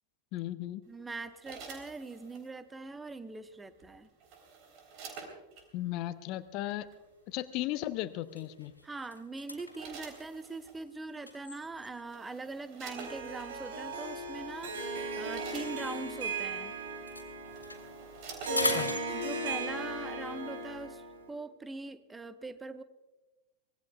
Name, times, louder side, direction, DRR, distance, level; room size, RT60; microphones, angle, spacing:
voice 1, 0.3-0.8 5.7-6.9 7.3-8.7 18.6-18.9, left 15 dB, 40° left, 14 dB, 0.6 m, -36 dB
voice 2, 0.9-4.1 8.8-16.7 18.4-18.9 19.1-22.8, right 3 dB, 10° right, 12 dB, 0.8 m, -42 dB
sound 1, 1.1-2.5 3.8-5.7 6.7-6.9 8.6-8.9 9.4-10.8 11.6-11.7 12.0-13.5 14.2-14.4 14.8-16.3 17.0-17.1 17.4-18.9 19.3-19.4, right 5 dB, 40° right, 3.7 m, -49 dB
sound 2, 7.1-7.3 7.7-7.9 8.2-12.2 13.0-16.6 16.9-19.7, left 2 dB, 85° left, 2.2 m, -41 dB
Harp, 12.8-21.2, right 2 dB, 60° right, 3.5 m, -37 dB
24.5 x 19.5 x 2.4 m, 1.1 s
figure-of-eight pair, 90°, 0 cm